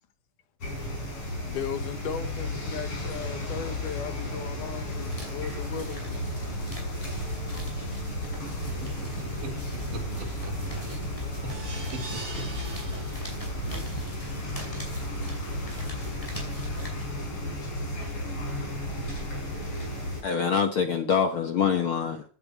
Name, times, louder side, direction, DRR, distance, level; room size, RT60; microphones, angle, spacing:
sound 1, 0.6-20.2, left 1 dB, 45° left, 6.2 m, -34 dB
voice 1, 1.4-6.1, left 7 dB, 80° left, 2.7 m, -36 dB
sound 2, 4.7-17.5, left 2 dB, 10° left, 5.4 m, -41 dB
voice 2, 9.0-10.5 10.9-11.0 11.4-12.0 12.4-12.5, right 3 dB, 80° right, 5.1 m, -41 dB
sound 3, 11.5-13.7 14.2-14.3 14.6-14.7, right 3 dB, 60° right, 6.9 m, -42 dB
voice 3, 20.2-22.2, left 7 dB, 60° left, 1.4 m, -25 dB
16.5 x 11.5 x 4.6 m
omnidirectional pair, 3.6 m